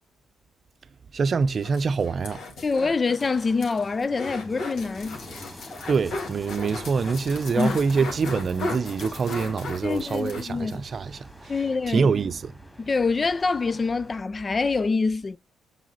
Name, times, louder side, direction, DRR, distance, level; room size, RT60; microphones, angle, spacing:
voice 1, 1.1-2.4 5.9-11.5 11.9-12.5, right 5 dB, 45° right, 0.6 m, -25 dB
sound 1, 1.4-10.8 11.1-11.2 11.4-11.6, left 3 dB, 70° left, 2.3 m, -37 dB
voice 2, 2.6-5.2 7.6-7.8 9.8-10.8 11.5-12.1 12.8-15.4, left 4 dB, 30° left, 0.3 m, -25 dB
sound 2, 3.2-14.2, equal, 5° left, 2.2 m, -45 dB
7.4 x 6.3 x 4.0 m
cardioid pair, 90°, 0 cm